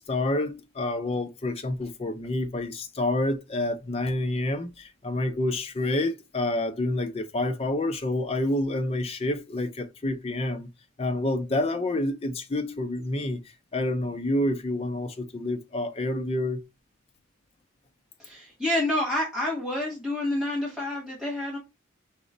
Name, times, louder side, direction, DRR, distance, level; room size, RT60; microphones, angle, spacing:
voice 1, 0.0-10.7 11.0-13.4 13.7-16.6, left 1 dB, 30° left, 0.4 m, -28 dB
voice 2, 18.2-21.6, left 1 dB, 5° right, 1.4 m, -28 dB
4.9 x 2.0 x 3.8 m
head